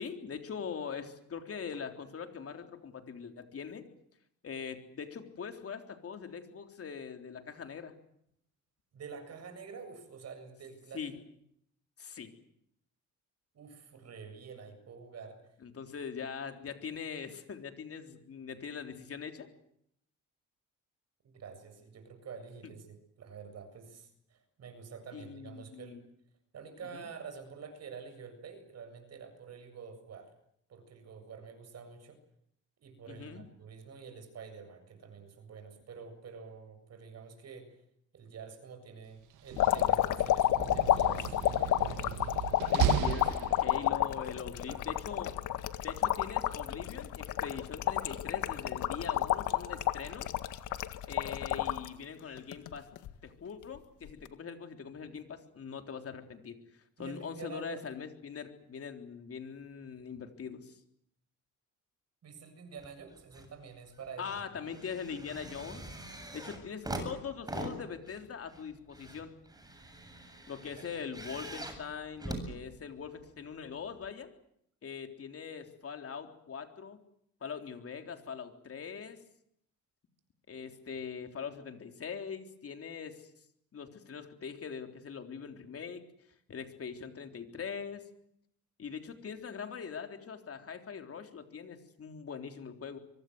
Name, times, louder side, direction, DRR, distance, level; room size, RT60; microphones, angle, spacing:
voice 1, 0.0-3.8 4.4-7.9 10.9-11.1 12.0-12.3 15.6-19.5 25.1-26.0 26.9-27.1 33.1-33.4 42.7-45.3 45.8-50.3 51.1-52.9 53.2-56.6 57.0-60.8 64.2-65.8 66.3-69.3 70.5-74.3 74.8-77.0 77.4-79.2 80.5-83.3 83.7-86.0 86.5-88.0 88.8-93.0, left 6 dB, 50° left, 6 dB, 3.7 m, -42 dB
voice 2, 8.9-11.2 13.5-15.4 21.2-26.0 26.5-30.3 30.7-32.2 32.8-37.7 38.1-42.6 44.7-45.0 57.0-57.9 62.2-64.4 70.8-70.9, right 6 dB, 55° right, 8 dB, 7.4 m, -48 dB
Slam, 39.3-44.1, right 11 dB, 90° right, 1.9 m, -35 dB
sound 1, 39.6-51.9 52.4-53.1 54.1-54.3, left 12 dB, 80° left, 1.8 m, -30 dB
sound 2, 62.8-63.5 63.9-73.3 74.0-74.1, right 1 dB, 15° right, 7.9 m, -43 dB
24.0 x 23.5 x 8.0 m, 0.72 s
cardioid pair, 90°, 30 cm